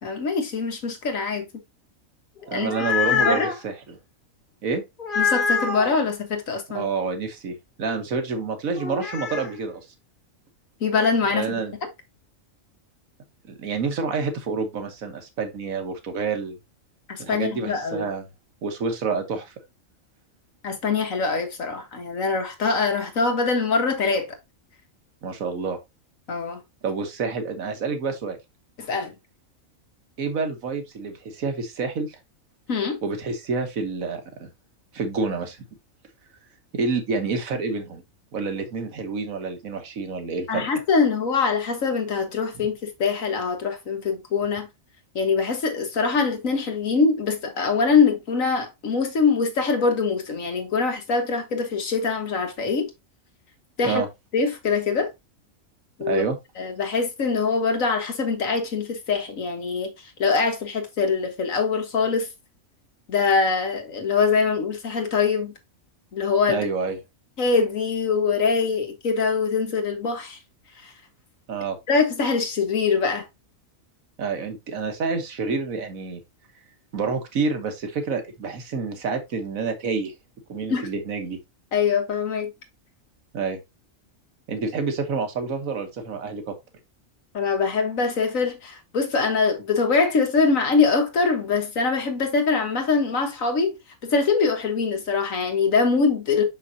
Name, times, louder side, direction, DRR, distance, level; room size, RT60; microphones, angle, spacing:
voice 1, 0.0-1.5 2.5-2.7 3.1-3.5 5.2-6.9 10.8-11.6 17.1-18.1 20.6-24.3 26.3-26.6 28.8-29.2 32.7-33.0 40.5-44.7 45.2-52.9 53.8-54.0 54.3-55.1 56.0-56.2 56.6-59.9 60.2-62.3 63.1-65.5 66.1-66.7 67.4-70.4 70.8-70.9 71.9-73.3 80.7-80.9 81.7-82.5 87.3-93.7 94.0-96.4, left 4 dB, 75° left, 1.8 m, -23 dB
sound 1, 2.4-3.6 5.0-6.0 8.8-9.5, left 5 dB, 40° left, 2.0 m, -25 dB
voice 2, 2.5-4.0 4.6-4.8 6.7-9.8 11.3-11.7 13.5-16.6 17.2-18.2 18.6-19.5 25.2-25.8 26.8-28.4 30.2-32.2 33.0-34.5 34.9-35.6 36.7-38.0 38.3-40.6 53.8-54.1 56.0-56.4 66.5-67.0 71.5-71.8 74.2-76.2 76.9-80.1 80.5-81.4 83.3-83.6 84.5-86.6, right 4 dB, 85° right, 1.7 m, -28 dB
6.2 x 5.7 x 2.7 m
omnidirectional pair, 1.4 m